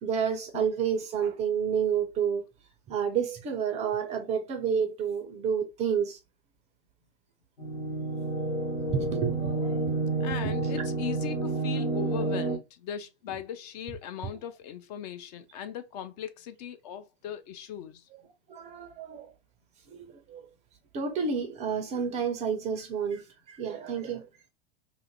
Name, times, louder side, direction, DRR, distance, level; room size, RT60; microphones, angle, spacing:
voice 1, 0.0-2.5 2.9-6.2 8.9-9.8 10.4-10.5 12.1-12.3 18.5-19.3 19.9-20.4 20.9-24.3, right 7 dB, 20° right, 0.4 m, -30 dB
sound 1, 7.6-12.6, right 3 dB, 80° left, 1.2 m, -29 dB
voice 2, 10.2-18.1, left 9 dB, 40° left, 0.4 m, -38 dB
2.5 x 2.4 x 2.7 m
figure-of-eight pair, 95°, 32 cm